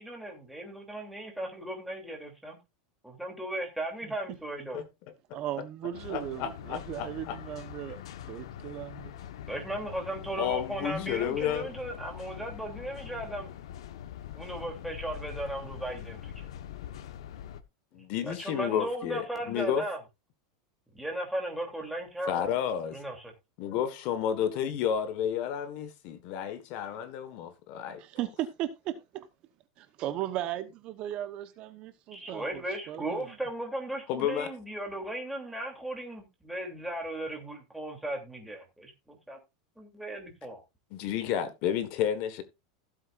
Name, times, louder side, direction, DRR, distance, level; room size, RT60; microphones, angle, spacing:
voice 1, 0.0-2.6 3.0-4.8 9.5-13.5 14.3-16.5 18.2-20.0 20.9-22.5 22.9-23.3 32.1-39.4 39.8-40.6, right 1 dB, ahead, 3.0 m, -36 dB
voice 2, 5.3-8.0 8.3-9.1 28.0-29.2 29.8-33.3, right 12 dB, 40° right, 1.0 m, -37 dB
sound 1, 5.9-17.6, left 10 dB, 85° left, 1.2 m, -43 dB
voice 3, 6.1-7.4 10.4-11.7 17.9-19.8 22.3-23.0 23.6-28.0 34.1-34.5 40.9-42.4, left 9 dB, 45° left, 1.5 m, -31 dB
15.5 x 8.1 x 2.5 m
supercardioid pair, 155°, 3 cm